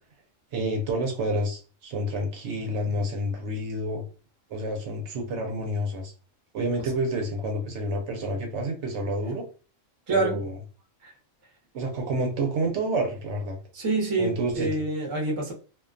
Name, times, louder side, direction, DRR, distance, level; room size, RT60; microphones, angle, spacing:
voice 1, 0.5-4.0 4.5-6.1 6.5-9.4 10.1-10.6 11.7-13.6 14.2-14.8, right 1 dB, 70° right, 0.9 m, -29 dB
voice 2, 13.7-15.5, right 2 dB, 35° right, 0.6 m, -26 dB
2.4 x 2.2 x 2.4 m
omnidirectional pair, 1.3 m